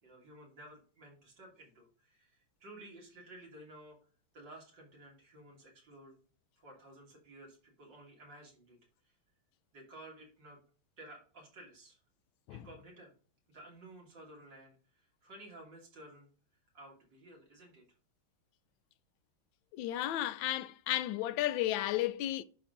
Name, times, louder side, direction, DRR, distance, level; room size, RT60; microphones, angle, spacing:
voice 1, 0.0-4.0 4.3-6.2 6.6-8.8 9.7-10.6 11.0-12.0 12.5-13.1 13.5-16.3 16.7-17.8, right 1 dB, 55° right, 3.4 m, -54 dB
voice 2, 19.7-22.4, left 14 dB, 75° left, 1.2 m, -33 dB
11.0 x 3.9 x 3.8 m
omnidirectional pair, 2.3 m